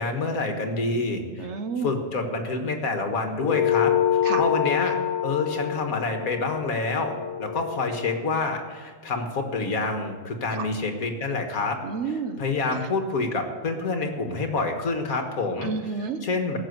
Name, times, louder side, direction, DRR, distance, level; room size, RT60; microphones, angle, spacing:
voice 1, 0.0-1.5 1.8-3.9 4.4-5.0 5.2-11.8 12.4-15.7 16.2-16.6, left 3 dB, 65° left, 5 dB, 1.9 m, -27 dB
voice 2, 1.4-1.9 4.2-4.4 10.5-10.7 11.8-12.4 12.7-12.8 15.6-16.2, right 5 dB, 50° right, 9 dB, 1.1 m, -30 dB
sound 1, 3.4-8.2, left 10 dB, 80° left, 1.2 m, -26 dB
16.5 x 7.0 x 8.0 m, 1.5 s
omnidirectional pair, 1.7 m